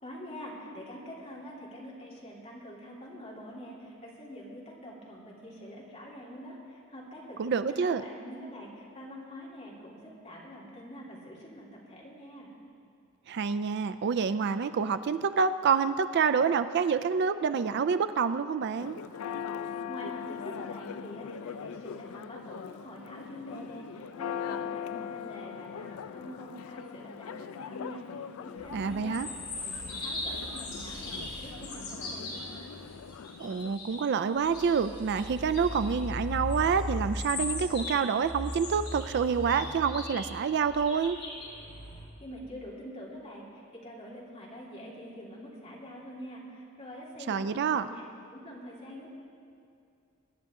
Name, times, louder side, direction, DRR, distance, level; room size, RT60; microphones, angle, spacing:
voice 1, 0.0-12.5 19.9-29.4 29.8-32.7 42.2-48.0 48.3-49.1, equal, 30° left, -5 dB, 3.1 m, -45 dB
voice 2, 7.4-8.0 13.3-19.0 28.7-29.3 33.4-41.2 47.3-47.9, right 6 dB, 55° right, 12 dB, 0.4 m, -27 dB
Church bell, 18.8-33.8, left 7 dB, 90° left, 0.4 m, -41 dB
sound 1, 28.6-34.0 34.4-42.1, left 2 dB, 50° left, 3.5 m, -38 dB
24.0 x 10.5 x 3.7 m, 2.4 s
head